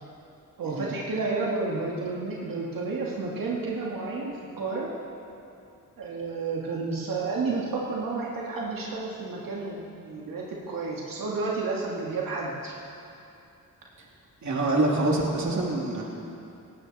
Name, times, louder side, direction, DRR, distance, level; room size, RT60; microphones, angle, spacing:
voice 1, 0.6-4.9 6.0-12.8 16.0-16.1, right 3 dB, 90° right, -4 dB, 2.1 m, -31 dB
voice 2, 14.4-16.0, right 2 dB, 60° right, -2 dB, 2.8 m, -25 dB
18.5 x 16.5 x 4.2 m, 2.6 s
wide cardioid pair, 120°, 33 cm